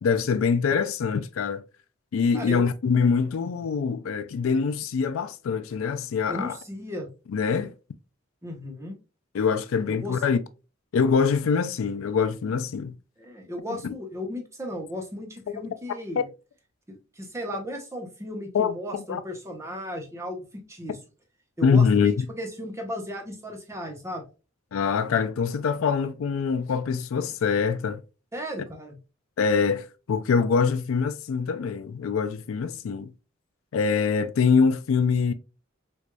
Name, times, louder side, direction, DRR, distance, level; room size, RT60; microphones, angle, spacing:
voice 1, 0.0-1.6 2.1-6.6 7.3-7.7 9.3-10.4 10.9-13.0 13.8-13.9 15.5-15.6 18.5-19.2 21.6-22.3 24.7-28.0 29.4-33.1 33.7-35.3, left 5 dB, 75° left, 0.4 m, -24 dB
voice 2, 2.3-2.7 6.3-7.1 8.4-9.0 9.9-10.2 13.2-16.3 16.9-21.0 21.6-24.3 28.3-29.0, left 1 dB, 15° right, 0.8 m, -35 dB
4.5 x 2.5 x 2.2 m
head